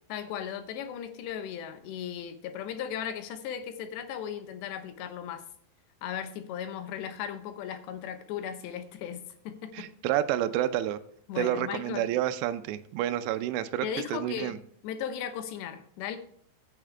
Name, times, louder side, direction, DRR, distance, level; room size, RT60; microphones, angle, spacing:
voice 1, 0.1-5.4 6.0-9.9 11.3-12.1 13.8-14.6 14.8-16.2, left 8 dB, 80° left, 9 dB, 3.1 m, -37 dB
voice 2, 9.7-11.0 11.4-14.6, right 12 dB, 85° right, 11 dB, 2.9 m, -29 dB
11.5 x 8.7 x 3.4 m, 0.64 s
omnidirectional pair, 5.0 m